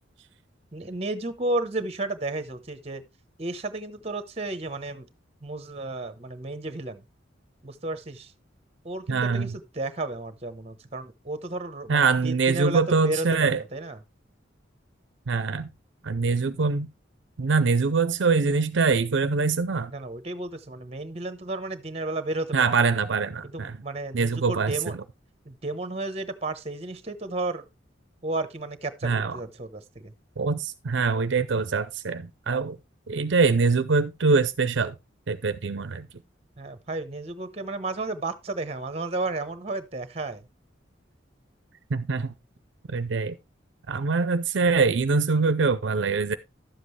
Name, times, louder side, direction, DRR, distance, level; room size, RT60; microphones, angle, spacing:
voice 1, 0.7-3.0 3.4-5.1 5.4-7.0 7.6-8.3 8.8-14.0 19.9-22.8 23.4-25.0 25.4-27.6 28.2-30.1 36.6-40.5, right 2 dB, 35° right, 1.0 m, -33 dB
voice 2, 9.1-9.5 11.9-13.6 15.3-15.7 16.0-16.9 17.4-19.9 22.5-23.7 24.1-24.8 29.0-29.4 30.4-32.8 33.1-34.9 35.3-36.1 41.9-42.3 42.9-43.3 43.9-46.3, right 4 dB, 70° right, 0.6 m, -23 dB
11.5 x 7.6 x 3.2 m
head